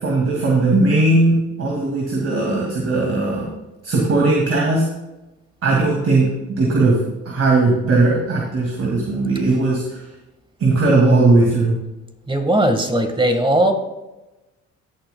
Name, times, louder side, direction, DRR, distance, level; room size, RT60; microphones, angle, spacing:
voice 1, 0.0-3.5 3.8-4.8 5.6-6.3 6.6-10.0 10.6-11.8, right 2 dB, 50° right, -2 dB, 2.4 m, -18 dB
voice 2, 12.3-13.7, right 1 dB, 15° right, 5 dB, 1.6 m, -18 dB
16.0 x 8.8 x 2.3 m, 1.0 s
cardioid pair, 90°, 30 cm